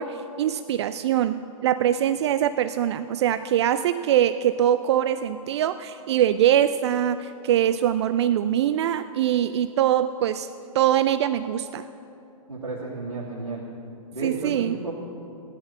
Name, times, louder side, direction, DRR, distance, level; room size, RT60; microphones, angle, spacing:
voice 1, 0.0-10.5 10.7-11.9 14.2-14.8, right 11 dB, 50° right, 12 dB, 0.5 m, -23 dB
voice 2, 12.5-13.6 14.1-14.9, right 2 dB, 90° right, -7 dB, 2.6 m, -32 dB
15.0 x 10.5 x 7.0 m, 2.7 s
figure-of-eight pair, 115°, 18 cm